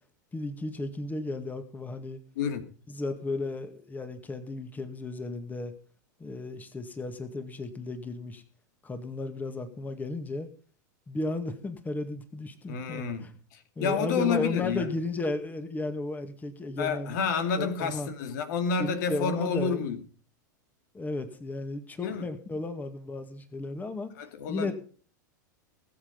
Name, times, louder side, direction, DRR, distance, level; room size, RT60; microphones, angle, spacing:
voice 1, 0.3-2.2 2.9-5.7 6.2-8.4 8.8-10.5 11.1-13.3 13.8-17.1 17.6-18.1 18.8-19.9 20.9-24.1 24.5-24.7, left 2 dB, 15° left, 2.1 m, -34 dB
voice 2, 2.4-2.7 12.7-14.9 16.8-20.0 22.0-22.3 24.2-24.7, left 5 dB, 70° left, 2.5 m, -30 dB
20.0 x 7.8 x 5.3 m
hypercardioid pair, 105°, 10 cm